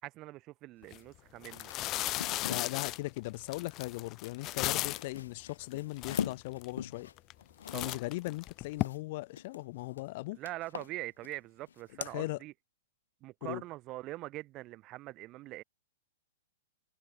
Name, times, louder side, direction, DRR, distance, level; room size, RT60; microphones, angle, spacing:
voice 1, 0.0-1.7 7.7-8.0 10.3-12.5 13.2-15.6, right 18 dB, 30° right, 5.8 m, -43 dB
sound 1, 0.8-1.0 1.4-5.2 5.7-5.8 6.0-6.7 7.2-7.4 7.7-8.8, left 17 dB, 30° left, 0.9 m, -35 dB
sound 2, 1.0-1.1 1.4-2.7 4.1-9.0 9.3-10.1 10.4-11.4 11.7-12.1, left 8 dB, 90° left, 5.0 m, -42 dB
voice 2, 2.4-7.1 7.7-10.4 12.1-12.4 13.4-13.6, left 21 dB, 45° left, 2.1 m, -38 dB
hypercardioid pair, 150°, 0 cm